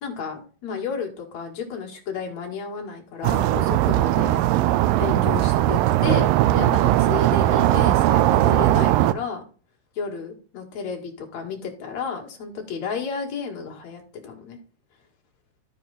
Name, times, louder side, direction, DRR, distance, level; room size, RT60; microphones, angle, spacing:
voice 1, 0.0-4.4 5.0-9.4 9.9-14.6, left 6 dB, 55° left, 1 dB, 2.9 m, -32 dB
sound 1, 3.2-9.1, right 14 dB, 80° right, 2.2 m, -19 dB
13.5 x 4.8 x 4.1 m, 0.39 s
omnidirectional pair, 4.1 m